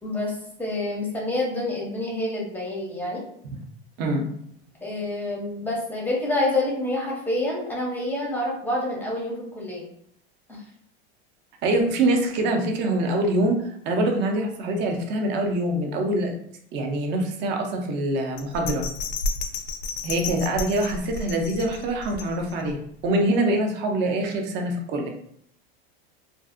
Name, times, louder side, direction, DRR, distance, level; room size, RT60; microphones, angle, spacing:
voice 1, 0.0-3.2 4.8-9.9 10.5-10.6, left 1 dB, 5° left, -3 dB, 0.6 m, -28 dB
voice 2, 11.6-16.3 16.7-18.9 20.0-22.8 23.0-25.1, right 1 dB, 35° right, 2 dB, 0.5 m, -24 dB
Bell, 18.4-22.7 23.1-23.2, left 3 dB, 90° left, 0.5 m, -32 dB
2.5 x 2.4 x 2.4 m, 0.68 s
supercardioid pair, 140°, 31 cm